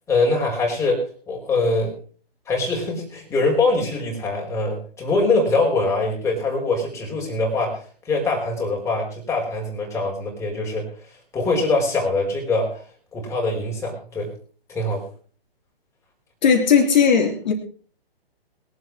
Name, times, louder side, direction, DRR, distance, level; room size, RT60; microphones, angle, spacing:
voice 1, 0.1-1.0 1.3-1.9 2.5-7.8 8.1-10.9 11.3-12.8 13.1-14.3 14.7-15.0, left 2 dB, 10° left, 4.5 m, -23 dB
voice 2, 16.4-17.5, left 6 dB, 45° left, 3.0 m, -17 dB
22.0 x 8.0 x 4.8 m
figure-of-eight pair, 140°, 31 cm